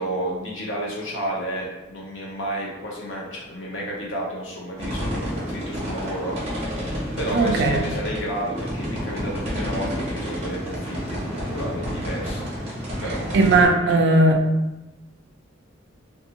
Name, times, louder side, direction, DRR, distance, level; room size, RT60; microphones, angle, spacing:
voice 1, 0.0-6.4 7.2-12.5 13.0-14.3, right 1 dB, 65° left, -4 dB, 0.8 m, -31 dB
sound 1, 4.8-13.6, equal, 30° right, 0.8 m, -30 dB
voice 2, 7.3-7.8 13.3-14.4, right 2 dB, 55° right, 4 dB, 0.4 m, -17 dB
2.6 x 2.6 x 2.7 m, 1.0 s
head